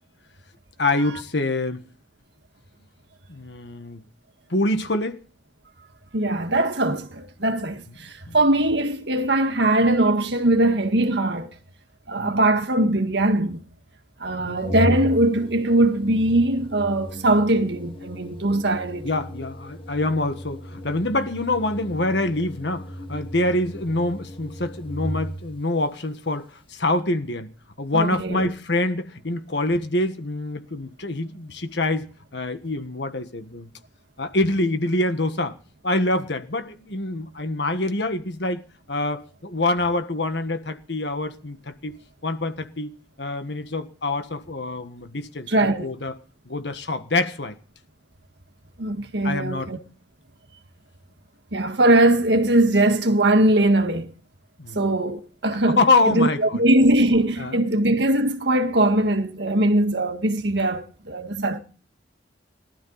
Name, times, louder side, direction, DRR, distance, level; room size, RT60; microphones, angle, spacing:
voice 1, 0.8-1.8 3.3-4.0 4.5-5.2 8.3-8.4 12.2-12.3 14.4-14.6 19.0-27.5 27.8-32.1 32.3-33.7 34.2-35.6 35.8-38.6 38.9-42.0 42.2-42.9 43.2-46.1 46.4-47.6 49.2-49.7 54.6-54.9 55.7-56.6 57.4-57.7, left 2 dB, 70° left, 1.6 m, -25 dB
voice 2, 6.1-11.5 12.1-13.6 14.2-19.1 27.9-28.5 45.5-45.9 48.8-49.8 51.5-54.1 54.7-61.6, right 1 dB, 65° right, 1.8 m, -21 dB
Organ, 14.6-25.6, equal, 30° left, 1.6 m, -35 dB
19.0 x 12.5 x 4.1 m
head